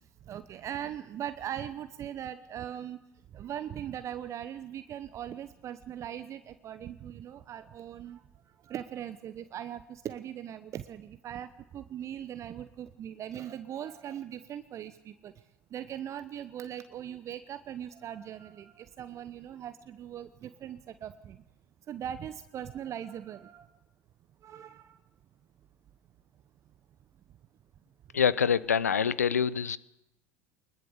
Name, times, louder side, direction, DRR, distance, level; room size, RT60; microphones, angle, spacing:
voice 1, 0.3-3.0 3.3-8.2 8.7-11.5 11.7-15.3 15.7-21.4 21.9-23.7 24.4-24.9, right 10 dB, 35° right, 11 dB, 1.0 m, -40 dB
voice 2, 28.1-29.8, left 7 dB, 80° left, 20 dB, 0.7 m, -25 dB
23.5 x 21.0 x 6.8 m, 0.86 s
figure-of-eight pair, 70°, 8 cm